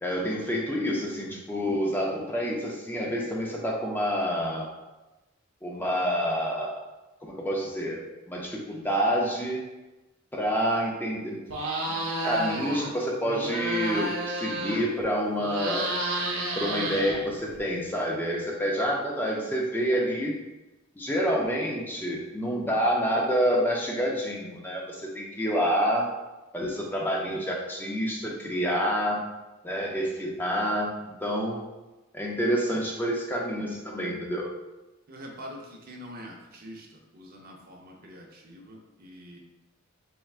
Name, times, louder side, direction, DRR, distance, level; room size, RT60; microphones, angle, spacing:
voice 1, 0.0-4.7 5.6-6.8 7.2-8.0 8.3-9.6 10.3-11.4 11.9-12.0 12.2-15.9 16.6-20.3 21.0-26.1 26.5-29.2 29.6-30.9 31.2-31.6 32.1-34.5, equal, 10° left, -2 dB, 0.5 m, -28 dB
sound 1, 11.5-12.9 13.2-15.0 15.3-17.6, right 2 dB, 80° right, 0.8 m, -31 dB
voice 2, 35.1-36.9 37.1-39.4, equal, 45° right, 1 dB, 0.6 m, -44 dB
4.5 x 3.4 x 2.4 m, 1.1 s
head